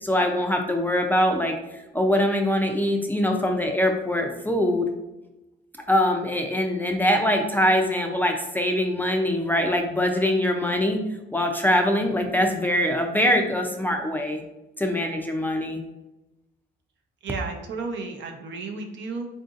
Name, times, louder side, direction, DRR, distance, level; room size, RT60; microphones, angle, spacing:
voice 1, 0.0-1.6 1.9-4.9 5.9-11.0 11.3-14.4 14.8-15.8, left 1 dB, 10° left, 2 dB, 0.4 m, -23 dB
voice 2, 17.2-19.3, right 4 dB, 65° right, 3 dB, 0.6 m, -33 dB
3.7 x 2.6 x 2.4 m, 0.97 s
cardioid pair, 90°, 20 cm